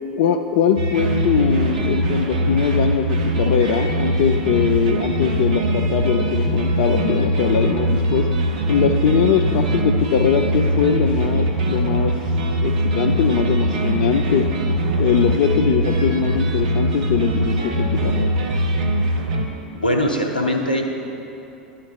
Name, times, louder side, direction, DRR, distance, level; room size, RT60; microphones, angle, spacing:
voice 1, 0.2-8.3 8.7-12.1 12.6-14.5 15.0-18.3, left 8 dB, 50° left, 5 dB, 0.4 m, -21 dB
sound 1, 0.8-19.5, right 1 dB, 60° right, 0.9 m, -21 dB
voice 2, 19.8-20.9, equal, 85° left, 2 dB, 0.8 m, -21 dB
11.5 x 4.3 x 5.5 m, 2.8 s
figure-of-eight pair, 85°, 5 cm